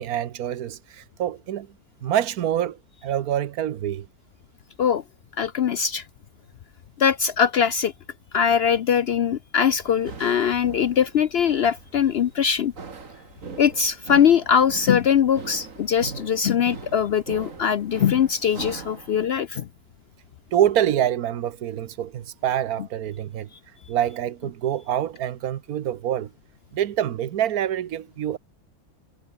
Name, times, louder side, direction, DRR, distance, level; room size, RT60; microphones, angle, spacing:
voice 1, 0.0-1.7 2.0-4.1 20.5-23.5 23.9-26.3 26.7-28.4, right 11 dB, 80° right, 1.4 m, -26 dB
voice 2, 5.4-6.0 7.0-7.9 8.3-12.7 13.6-19.7, left 8 dB, 60° left, 0.7 m, -21 dB
sound 1, 9.8-19.3, right 4 dB, 60° right, 2.6 m, -41 dB
omnidirectional pair, 1.6 m